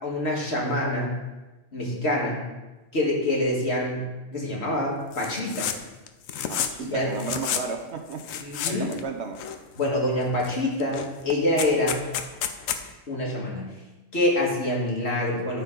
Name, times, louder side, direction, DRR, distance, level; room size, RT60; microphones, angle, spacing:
voice 1, 0.0-1.2 1.7-2.5 2.9-5.7 6.8-7.1 8.4-8.9 9.8-12.0 13.1-13.7 14.1-15.6, left 1 dB, 55° left, -3 dB, 2.0 m, -26 dB
sound 1, 5.1-5.8 6.1-6.8 7.2-7.7 8.1-9.0 9.4-10.0 10.4-10.5 10.8-12.8, left 9 dB, 80° left, 1.0 m, -30 dB
voice 2, 6.5-8.2 8.6-9.4, right 5 dB, 60° right, 4 dB, 1.0 m, -33 dB
13.5 x 4.5 x 3.7 m, 1.1 s
omnidirectional pair, 1.3 m